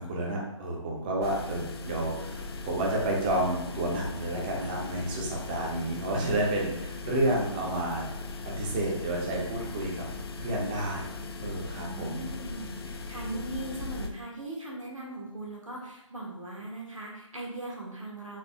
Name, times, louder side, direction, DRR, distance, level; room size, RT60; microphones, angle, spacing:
voice 1, 0.0-8.1 8.4-10.1 10.4-11.1 11.4-12.2, right 1 dB, 15° right, -2 dB, 0.5 m, -30 dB
sound 1, 1.2-14.1, left 3 dB, 50° left, 0.4 m, -39 dB
voice 2, 11.8-18.4, right 2 dB, 85° right, -3 dB, 1.3 m, -39 dB
4.2 x 2.0 x 3.4 m, 0.93 s
figure-of-eight pair, 150°, 16 cm